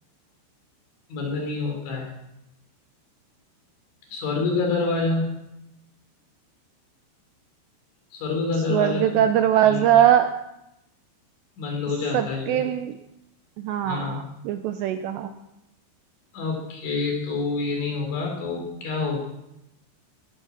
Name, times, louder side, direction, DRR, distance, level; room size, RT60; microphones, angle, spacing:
voice 1, 1.1-2.1 4.1-5.4 8.1-9.0 9.6-9.9 11.6-12.6 13.8-14.2 16.3-19.2, left 3 dB, 70° left, 1 dB, 6.2 m, -27 dB
voice 2, 8.7-10.3 12.1-12.9 13.6-14.2 14.5-15.3, right 10 dB, 80° right, 8 dB, 2.6 m, -21 dB
19.0 x 9.2 x 7.3 m, 0.86 s
omnidirectional pair, 5.6 m